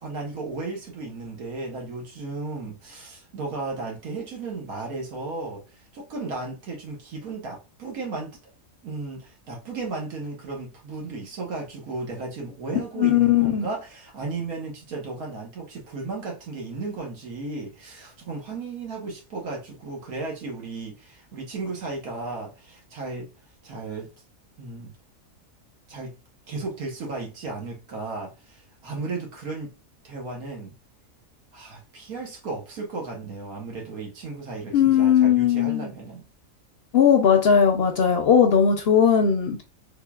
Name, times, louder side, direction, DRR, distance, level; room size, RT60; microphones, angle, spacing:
voice 1, 0.0-5.6 5.9-8.4 8.8-23.3 23.6-24.1 24.6-24.9 25.9-26.1 26.5-29.7 30.0-30.7 31.5-36.2, right 3 dB, 85° right, 1.6 m, -34 dB
voice 2, 13.0-13.6 34.7-35.9 36.9-39.6, left 8 dB, 60° left, 0.7 m, -18 dB
3.6 x 3.4 x 2.3 m
omnidirectional pair, 1.5 m